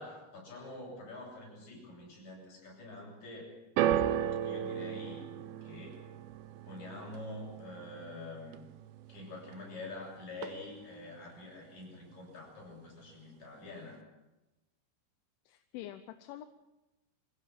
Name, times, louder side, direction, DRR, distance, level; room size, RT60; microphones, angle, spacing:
voice 1, 0.0-3.5 4.4-5.3 5.6-6.1 6.6-8.7 9.1-14.1, left 2 dB, 35° left, -2 dB, 8.7 m, -46 dB
sound 1, 3.8-10.0 10.3-11.0 11.7-11.8, right 10 dB, 85° right, 2.2 m, -36 dB
voice 2, 15.5-16.5, left 13 dB, 80° left, 10 dB, 3.2 m, -46 dB
26.0 x 16.5 x 7.6 m, 1.0 s
omnidirectional pair, 5.6 m